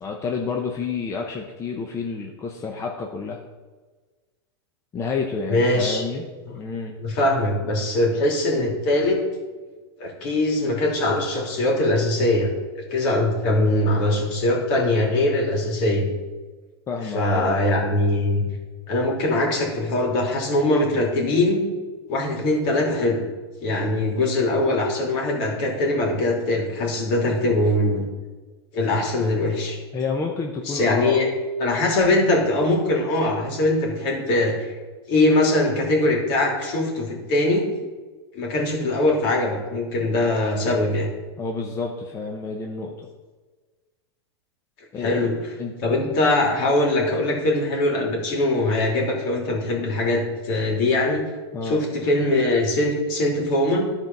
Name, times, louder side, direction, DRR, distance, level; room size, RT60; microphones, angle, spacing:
voice 1, 0.0-3.4 4.9-6.3 6.5-7.0 16.9-17.6 29.9-31.2 41.4-43.1 44.9-45.2 45.6-45.7 51.5-51.8, left 4 dB, 20° left, 1 dB, 0.7 m, -29 dB
voice 2, 5.5-6.0 6.4-6.5 7.0-9.2 10.0-12.5 12.9-16.1 17.1-18.4 18.9-21.7 22.1-23.2 23.6-28.0 28.7-29.8 30.6-31.3 31.6-34.7 35.1-37.6 38.3-41.1 45.0-45.4 45.8-51.2 51.6-53.8, left 2 dB, 55° left, -1 dB, 2.9 m, -22 dB
12.0 x 4.5 x 5.4 m, 1.3 s
supercardioid pair, 140°, 14 cm